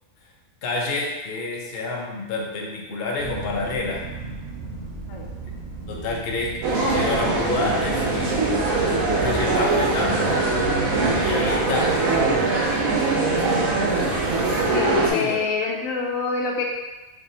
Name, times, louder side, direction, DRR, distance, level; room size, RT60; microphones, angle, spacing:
voice 1, 0.6-4.1 5.9-8.4 9.2-10.5 11.2-12.0 15.1-15.4, left 3 dB, 55° left, -2 dB, 0.8 m, -28 dB
sound 1, 3.2-11.6, right 3 dB, 60° right, 0.4 m, -35 dB
sound 2, 6.6-15.1, right 3 dB, 80° right, 1.2 m, -22 dB
voice 2, 14.7-16.7, left 4 dB, 80° left, 0 dB, 1.0 m, -25 dB
4.7 x 2.6 x 2.7 m, 1.1 s
omnidirectional pair, 1.4 m